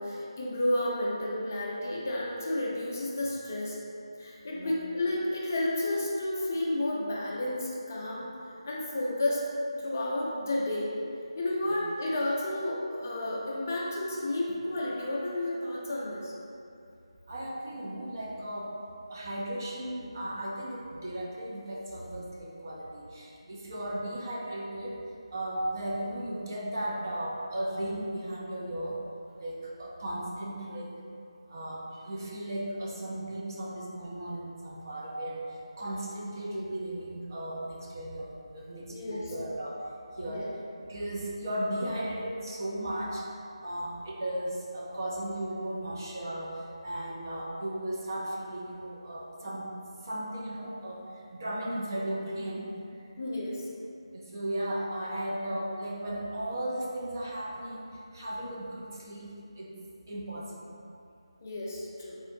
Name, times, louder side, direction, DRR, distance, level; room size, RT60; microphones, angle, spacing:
voice 1, 0.0-3.8 4.2-8.3 8.7-9.5 9.8-10.9 11.4-16.3 38.9-39.2 40.2-40.5 53.2-53.7 61.4-62.2, left 1 dB, 30° left, -5 dB, 0.4 m, -31 dB
voice 2, 17.3-18.7 19.1-25.0 25.3-29.0 29.4-31.0 31.5-35.4 35.8-39.8 40.2-43.3 43.6-49.7 50.0-51.0 51.3-52.7 54.1-59.3 59.5-59.7 60.1-60.8, right 1 dB, 40° right, -4 dB, 0.4 m, -36 dB
3.5 x 2.4 x 2.5 m, 2.5 s
figure-of-eight pair, 160°, 3 cm